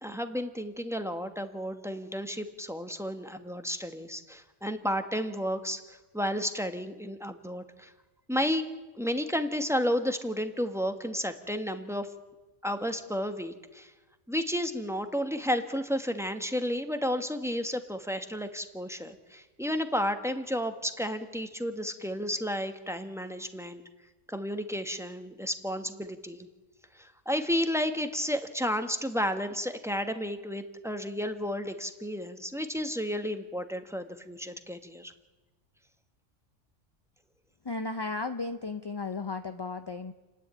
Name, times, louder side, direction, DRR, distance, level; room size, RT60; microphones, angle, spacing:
voice 1, 0.0-7.9 8.3-8.6 9.0-12.1 12.6-13.9 14.3-23.8 24.3-26.5 27.0-35.1, equal, ahead, 8 dB, 1.2 m, -32 dB
voice 2, 37.6-40.1, left 3 dB, 30° left, 8 dB, 0.5 m, -34 dB
29.5 x 10.5 x 8.9 m, 1.2 s
omnidirectional pair, 1.2 m